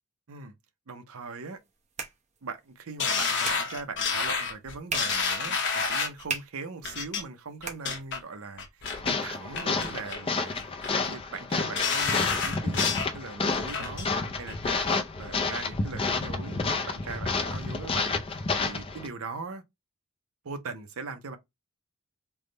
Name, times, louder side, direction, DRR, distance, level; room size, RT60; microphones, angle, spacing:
voice 1, 0.9-1.6 2.4-10.6 10.9-14.1 14.4-18.2 18.6-19.6 20.4-21.4, right 4 dB, 65° right, 0.6 m, -40 dB
sound 1, 1.4-8.5, right 4 dB, 30° right, 0.8 m, -42 dB
sound 2, 3.0-6.2 6.8-7.2 7.6-8.2 8.6-9.1 9.5-10.2 10.5-11.1 11.5-13.1 13.5-14.1 14.5-14.6, left 5 dB, 55° left, 0.9 m, -29 dB
sound 3, 8.8-19.1, left 4 dB, 25° left, 0.4 m, -30 dB
3.4 x 2.1 x 3.8 m
head